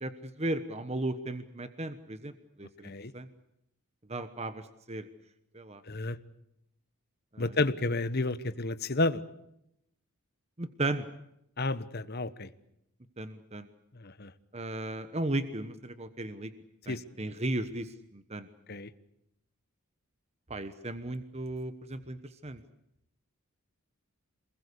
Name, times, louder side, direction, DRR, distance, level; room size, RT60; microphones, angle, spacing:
voice 1, 0.0-2.3 2.6-3.3 4.1-5.1 5.5-5.8 7.3-7.5 10.6-11.0 13.2-13.7 14.5-16.5 16.9-18.5 20.5-22.2 22.4-22.6, right 2 dB, 30° right, 11 dB, 1.2 m, -35 dB
voice 2, 5.9-6.2 7.4-9.2 11.6-12.5 13.9-14.3 16.9-17.0 18.7-18.9, left 2 dB, 45° left, 13 dB, 1.2 m, -31 dB
27.5 x 21.0 x 8.4 m, 0.79 s
head